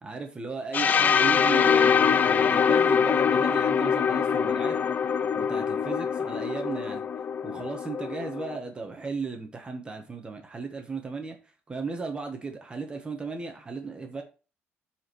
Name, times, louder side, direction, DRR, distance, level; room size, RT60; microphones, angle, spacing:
voice 1, 0.0-4.8 5.3-7.0 7.4-14.2, right 4 dB, 20° right, 4 dB, 1.1 m, -36 dB
sound 1, 0.7-8.6, left 7 dB, 40° left, 0.4 m, -24 dB
12.0 x 4.4 x 3.1 m, 0.34 s
cardioid pair, 135°, 4 cm